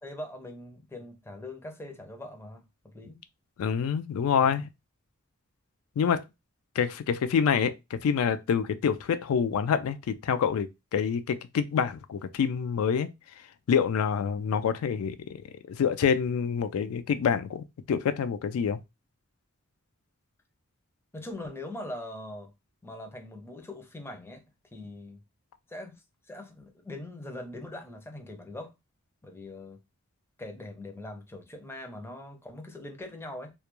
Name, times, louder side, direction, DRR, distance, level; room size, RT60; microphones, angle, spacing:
voice 1, 0.0-3.2 21.1-22.5 22.8-24.4 24.7-25.2 25.7-28.7 29.2-29.8 30.4-33.5, left 1 dB, 10° left, 0.4 m, -42 dB
voice 2, 3.6-4.7 6.0-6.2 6.8-10.7 10.9-13.1 13.7-15.4 15.7-18.8, left 7 dB, 85° left, 0.3 m, -27 dB
2.2 x 2.1 x 2.9 m
head